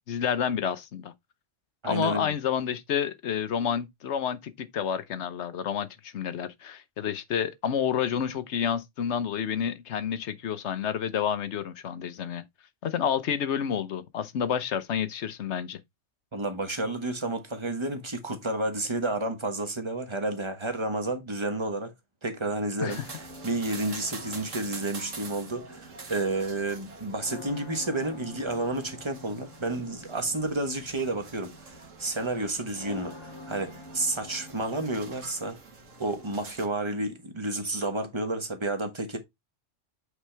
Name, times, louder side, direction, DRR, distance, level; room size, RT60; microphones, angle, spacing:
voice 1, 0.1-1.1 1.8-12.4 12.8-15.8 22.8-23.0 23.9-24.0, left 8 dB, 65° left, 1.1 m, -29 dB
voice 2, 1.8-2.3 16.3-21.9 22.2-35.6 36.0-39.2, right 2 dB, 25° right, 1.2 m, -31 dB
sound 1, 22.9-36.7, right 4 dB, 85° right, 1.9 m, -46 dB
sound 2, 23.0-35.2, left 2 dB, 20° left, 1.1 m, -48 dB
8.2 x 4.4 x 3.3 m
omnidirectional pair, 1.3 m